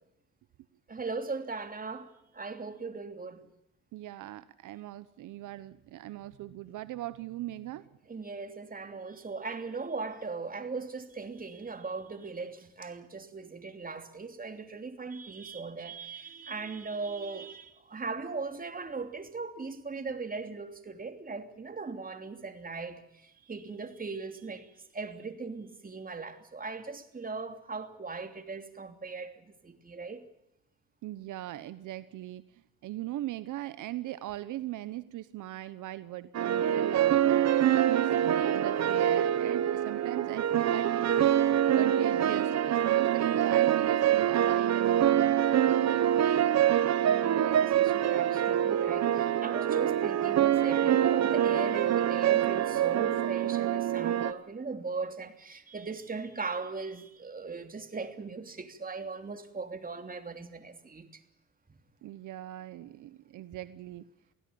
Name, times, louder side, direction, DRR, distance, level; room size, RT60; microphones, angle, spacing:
voice 1, 0.9-3.5 8.1-24.7 24.9-30.3 47.0-61.1, right 4 dB, 30° right, 3.0 m, -39 dB
voice 2, 3.9-7.8 31.0-32.4 32.8-37.4 37.9-41.0 41.4-45.5 62.0-64.0, right 15 dB, 80° right, 1.0 m, -39 dB
sound 1, 36.3-54.3, right 10 dB, 60° right, 1.2 m, -25 dB
24.0 x 16.5 x 8.6 m
cardioid pair, 90°, 30 cm